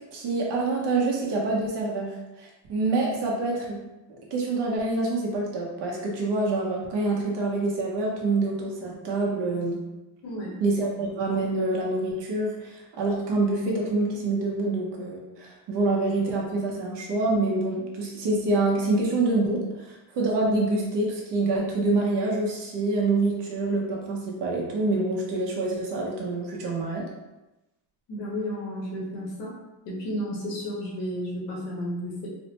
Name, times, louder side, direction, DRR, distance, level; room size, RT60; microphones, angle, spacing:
voice 1, 0.1-2.1 2.4-3.8 4.3-9.8 10.6-27.0, right 2 dB, 75° right, -2 dB, 1.0 m, -26 dB
voice 2, 10.2-10.5 28.1-29.5 29.8-32.3, equal, 90° left, -5 dB, 1.4 m, -32 dB
4.0 x 2.1 x 2.9 m, 1.0 s
cardioid pair, 150°, 42 cm